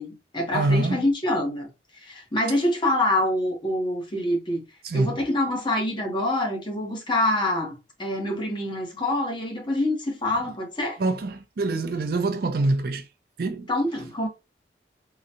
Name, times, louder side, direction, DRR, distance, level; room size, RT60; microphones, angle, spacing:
voice 1, 0.0-1.7 1.9-4.6 4.9-11.0 13.7-14.3, left 1 dB, 25° left, 1.0 m, -26 dB
voice 2, 0.5-1.0 4.8-5.2 11.0-13.1 13.4-13.7, right 2 dB, 55° right, 0.4 m, -25 dB
3.8 x 2.2 x 2.7 m
head